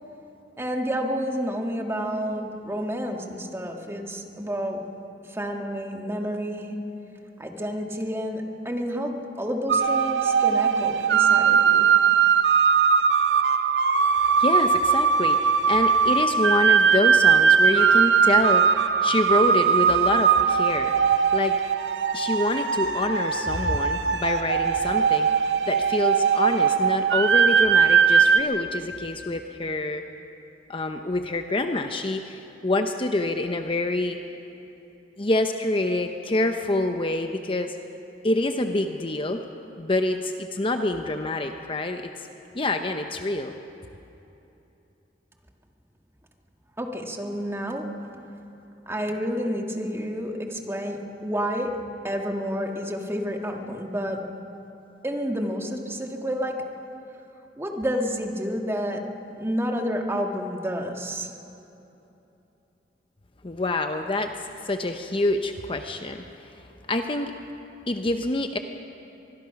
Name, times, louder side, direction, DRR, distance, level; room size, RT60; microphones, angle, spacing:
voice 1, 0.6-4.8 5.3-6.8 7.4-11.9 46.8-48.2 48.9-54.3 55.0-56.7 57.6-61.3, equal, 15° right, 2 dB, 1.8 m, -30 dB
sound 1, 9.7-28.4, right 6 dB, 70° right, 0.9 m, -20 dB
voice 2, 14.4-18.8 19.0-21.6 22.1-25.3 25.6-30.0 30.7-34.2 35.2-37.8 38.2-39.4 39.8-42.0 42.5-43.5 63.4-64.3 64.6-66.5 66.9-67.3 67.9-68.6, left 2 dB, 30° left, 6 dB, 0.8 m, -26 dB
24.5 x 21.5 x 5.9 m, 2.9 s
head